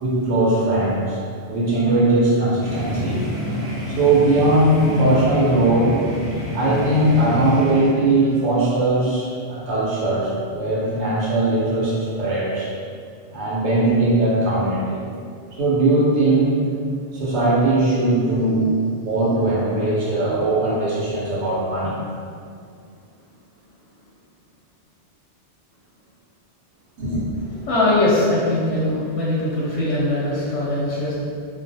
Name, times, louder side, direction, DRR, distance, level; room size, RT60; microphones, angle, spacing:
voice 1, 0.0-1.2 1.4-3.3 3.9-6.0 6.5-12.7 13.3-15.0 15.5-16.6 17.1-18.7 19.0-22.0 27.0-27.2, right 2 dB, 70° right, -7 dB, 1.0 m, -19 dB
sound 1, 2.6-7.9, equal, 15° right, 0.5 m, -28 dB
voice 2, 27.6-31.1, left 1 dB, 90° left, -7 dB, 0.9 m, -21 dB
2.4 x 2.3 x 2.6 m, 2.3 s
omnidirectional pair, 1.2 m